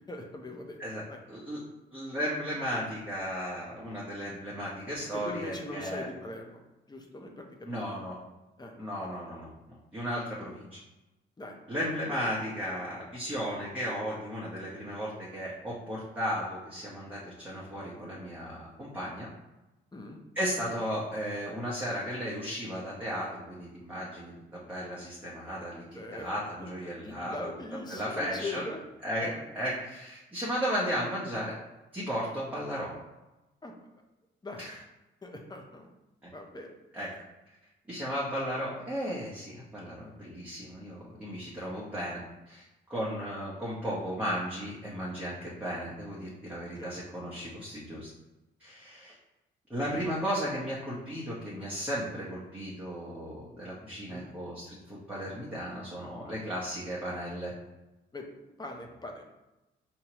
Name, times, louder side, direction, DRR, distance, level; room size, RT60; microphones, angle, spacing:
voice 1, 0.1-0.8 1.1-1.2 5.0-6.6 6.9-8.0 8.6-8.8 11.4-11.6 19.9-20.2 25.9-26.3 26.6-28.8 29.2-29.5 33.6-33.7 34.4-34.6 35.2-35.9 36.3-36.7 46.8-46.9 54.1-54.3 58.1-58.3 58.6-59.2, left 2 dB, 20° left, 3 dB, 0.8 m, -41 dB
voice 2, 0.8-1.6 1.9-6.1 7.7-8.2 8.8-9.5 9.9-10.8 11.7-19.3 20.3-25.8 26.1-27.5 27.9-28.6 29.0-31.5 31.9-32.9 34.6-34.8 36.2-36.3 36.9-37.1 37.9-42.2 42.5-42.6 42.9-48.1 48.6-49.1 49.7-57.5, equal, 10° right, -8 dB, 1.1 m, -35 dB
5.4 x 2.9 x 3.0 m, 1.0 s
cardioid pair, 90°, 20 cm